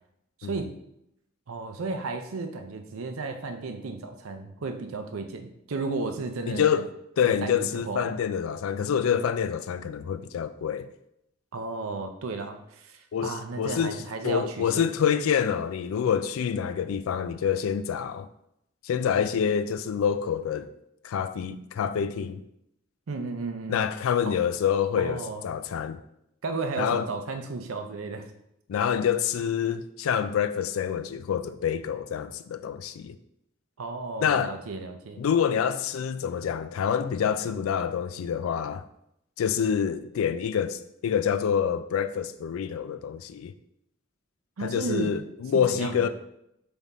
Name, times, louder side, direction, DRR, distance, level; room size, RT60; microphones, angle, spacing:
voice 1, 0.4-0.7 1.5-6.8 7.2-8.1 11.5-14.9 23.1-23.8 24.3-24.4 25.0-25.4 26.4-28.3 33.8-35.2 44.6-45.2 45.7-46.1, right 3 dB, 90° right, 0.6 m, -34 dB
voice 2, 6.5-6.9 7.2-10.9 13.1-18.3 18.8-20.7 21.0-22.4 23.7-26.0 26.8-27.1 28.7-33.2 34.2-34.6 35.2-38.8 39.4-43.5 44.6-46.1, left 8 dB, 80° left, 0.3 m, -27 dB
3.7 x 3.5 x 4.1 m
head